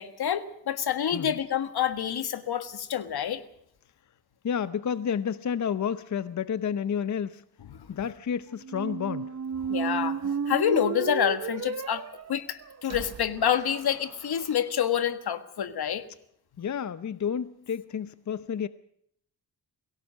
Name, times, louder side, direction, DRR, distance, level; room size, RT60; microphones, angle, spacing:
voice 1, 0.0-3.4 7.7-7.8 9.7-12.0 12.3-16.1, left 9 dB, 80° left, 1.6 m, -28 dB
voice 2, 4.4-7.4 7.9-9.3 16.6-18.7, left 7 dB, 50° left, 0.8 m, -30 dB
sound 1, 8.6-14.5, right 7 dB, 45° right, 0.8 m, -33 dB
23.0 x 17.5 x 6.5 m
cardioid pair, 80°, 38 cm